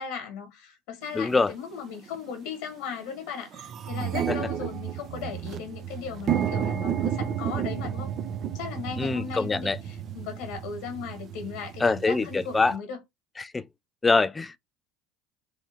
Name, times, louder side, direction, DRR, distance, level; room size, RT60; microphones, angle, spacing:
voice 1, 0.0-8.1 8.5-13.0, left 7 dB, 65° left, 1.3 m, -37 dB
voice 2, 1.2-1.5 9.0-9.8 11.8-12.7 13.4-13.6 14.0-14.6, left 3 dB, 20° left, 0.3 m, -24 dB
sound 1, 1.2-1.3 2.1-2.3 2.7-2.8 3.1-12.8, right 9 dB, 45° right, 0.5 m, -32 dB
3.3 x 2.7 x 4.3 m
hypercardioid pair, 70°, 0 cm